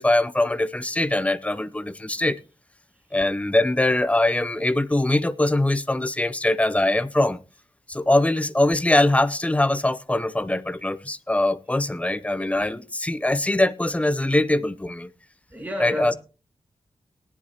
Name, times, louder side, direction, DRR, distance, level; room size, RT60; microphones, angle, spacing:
voice 1, 0.0-2.4 3.1-7.4 7.9-15.1 15.8-16.1, left 1 dB, 15° left, 0.7 m, -22 dB
voice 2, 15.5-16.2, left 1 dB, 15° right, 2.4 m, -33 dB
18.0 x 10.5 x 2.9 m
wide cardioid pair, 130°, 10 cm